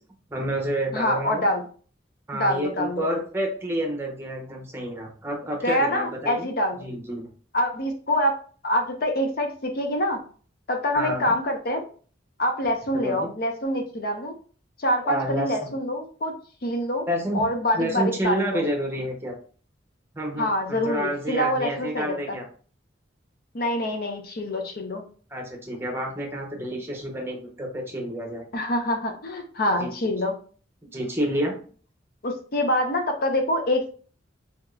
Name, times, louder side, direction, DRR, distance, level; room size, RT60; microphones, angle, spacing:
voice 1, 0.3-1.4 2.3-6.5 6.8-7.2 11.0-11.3 13.0-13.3 15.0-15.7 17.1-17.5 17.7-19.3 20.1-22.4 25.3-28.4 29.8-30.1 30.9-31.5, right 1 dB, 15° right, 0 dB, 0.8 m, -29 dB
voice 2, 0.9-1.6 2.3-3.0 5.6-6.8 7.5-8.3 8.6-10.2 10.7-11.8 12.4-14.3 14.8-16.3 16.6-17.1 17.3-18.6 20.4-22.4 23.5-25.0 28.5-30.3 32.2-33.9, left 1 dB, 50° left, 4 dB, 0.6 m, -25 dB
3.5 x 2.9 x 2.3 m, 0.42 s
head